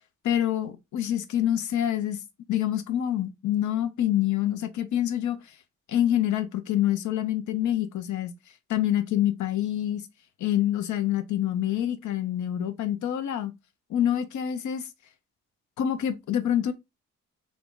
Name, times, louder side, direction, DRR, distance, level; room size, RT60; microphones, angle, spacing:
voice 1, 0.2-2.2 2.5-5.4 5.9-8.3 8.7-10.0 10.4-13.5 13.9-14.9 15.8-16.7, left 11 dB, 70° left, 0.9 m, -26 dB
3.7 x 3.6 x 3.8 m
cardioid pair, 90°, 30 cm